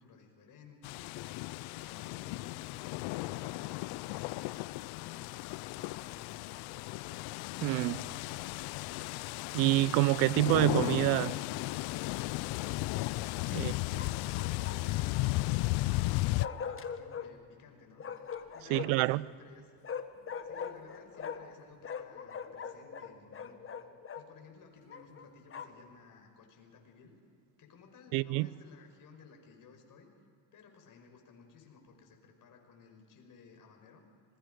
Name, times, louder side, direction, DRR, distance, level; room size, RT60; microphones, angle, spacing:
voice 1, 0.0-5.3 5.6-6.7 13.4-19.8 20.4-23.6 24.1-27.2 27.6-30.1 30.5-34.0, left 5 dB, 50° left, 5.3 m, -57 dB
sound 1, 0.8-16.5, left 21 dB, 70° left, 0.5 m, -35 dB
voice 2, 7.6-8.1 9.5-11.4 13.5-13.7 18.7-19.2 28.1-28.5, right 20 dB, 85° right, 0.7 m, -27 dB
Bark, 10.9-11.5 14.0-15.1 16.4-17.3 18.0-19.1 19.8-21.6 21.8-24.3 24.9-25.9, left 7 dB, 30° left, 1.4 m, -42 dB
26.0 x 21.5 x 5.2 m
supercardioid pair, 105°, 41 cm